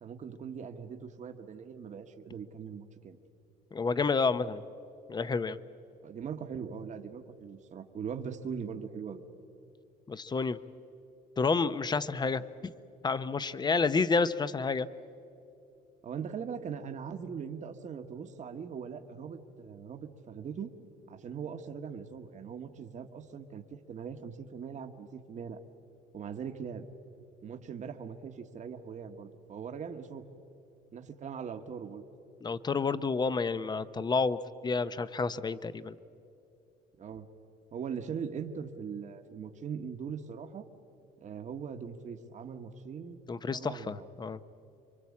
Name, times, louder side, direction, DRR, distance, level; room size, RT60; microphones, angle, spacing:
voice 1, 0.0-3.2 6.0-9.2 16.0-20.7 21.1-25.6 26.1-26.8 27.4-30.2 30.9-32.0 37.0-37.3 37.7-40.7 41.2-43.2 43.5-44.1, right 7 dB, 45° right, 6 dB, 1.4 m, -41 dB
voice 2, 3.7-4.6 5.1-5.6 10.1-10.6 11.4-12.4 13.0-14.9 32.4-36.0 43.3-44.4, left 4 dB, 25° left, 14 dB, 0.9 m, -29 dB
27.0 x 24.0 x 8.6 m, 2.8 s
cardioid pair, 110°, 17 cm